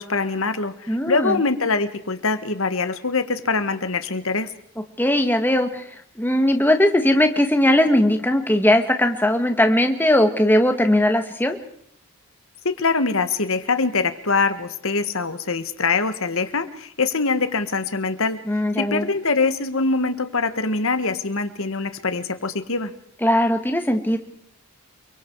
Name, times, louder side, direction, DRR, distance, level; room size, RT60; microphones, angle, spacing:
voice 1, 0.0-4.5 12.6-18.4 18.8-22.9, left 4 dB, 60° left, 10 dB, 1.7 m, -23 dB
voice 2, 0.9-1.4 5.0-5.8 6.2-11.6 18.5-19.1 23.2-24.2, left 1 dB, 10° left, 5 dB, 2.0 m, -19 dB
29.0 x 23.5 x 4.8 m, 0.68 s
head